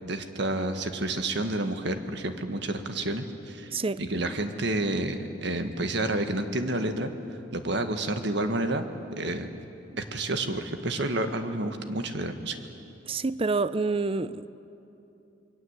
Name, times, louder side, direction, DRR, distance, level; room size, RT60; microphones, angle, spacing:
voice 1, 0.0-3.7 4.0-7.1 7.5-8.9 9.2-9.5 10.0-12.6, right 2 dB, 65° right, 7 dB, 1.7 m, -29 dB
voice 2, 13.1-14.5, right 3 dB, 30° right, 16 dB, 0.6 m, -27 dB
27.5 x 21.5 x 8.2 m, 2.8 s
head